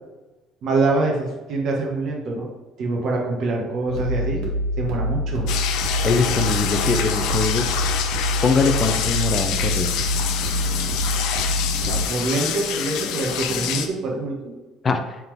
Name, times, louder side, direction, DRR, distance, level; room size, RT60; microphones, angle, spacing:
voice 1, 0.6-2.5 2.8-4.4 4.8-5.5 11.2-11.5 11.9-14.5, right 3 dB, 45° right, -1 dB, 1.5 m, -25 dB
sound 1, 3.9-12.0, equal, 85° right, 1.8 m, -25 dB
sound 2, 5.5-13.9, left 8 dB, 65° left, 0.6 m, -26 dB
voice 2, 6.0-7.7 8.4-9.9 14.8-15.0, left 4 dB, 20° left, 7 dB, 0.6 m, -22 dB
8.0 x 3.8 x 3.5 m, 1.2 s
cardioid pair, 165°, 0 cm